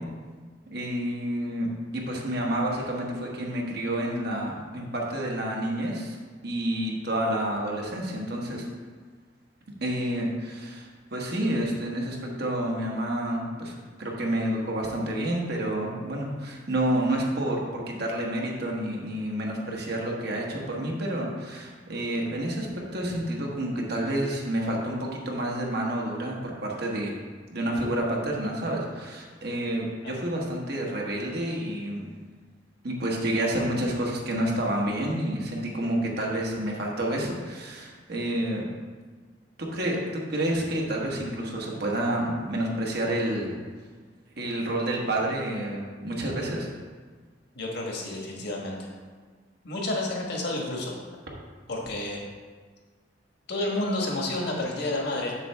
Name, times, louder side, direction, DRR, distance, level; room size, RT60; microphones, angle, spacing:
voice 1, 0.7-1.7 1.9-6.2 6.4-8.7 9.8-13.7 14.0-22.7 22.9-27.1 27.5-32.1 32.8-38.7 39.6-43.6 44.4-46.7, right 1 dB, 60° right, -2 dB, 1.4 m, -29 dB
voice 2, 47.5-48.9 49.6-51.0 51.7-52.2 53.5-55.3, left 2 dB, 65° left, -1 dB, 1.5 m, -30 dB
7.3 x 6.8 x 3.5 m, 1.5 s
head